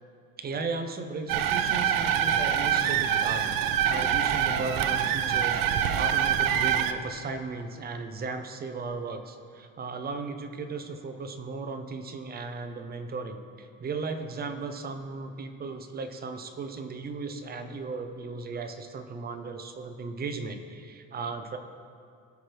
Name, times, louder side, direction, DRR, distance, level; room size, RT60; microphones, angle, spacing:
voice 1, 0.4-21.6, right 4 dB, 30° right, 7 dB, 0.5 m, -36 dB
sound 1, 1.3-6.9, right 9 dB, 75° right, 0.6 m, -25 dB
17.5 x 6.0 x 3.3 m, 2.4 s
cardioid pair, 165°, 34 cm